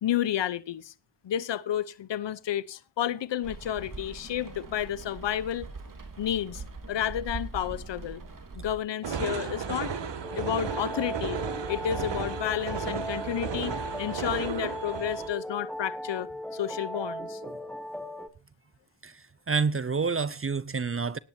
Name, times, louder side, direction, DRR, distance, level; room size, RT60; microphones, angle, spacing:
voice 1, 0.0-0.9 1.2-5.7 6.2-6.6 6.9-8.2 8.5-9.9 10.3-11.4 11.7-17.4, left 10 dB, 85° left, 0.9 m, -31 dB
Rain, 3.4-8.8, right 3 dB, 50° right, 2.8 m, -42 dB
sound 1, 9.0-15.3, right 6 dB, 85° right, 2.3 m, -34 dB
sound 2, 10.2-18.3, equal, ahead, 1.5 m, -38 dB
voice 2, 19.0-21.2, right 5 dB, 30° right, 0.7 m, -29 dB
19.0 x 10.5 x 2.8 m
cardioid pair, 50°, 42 cm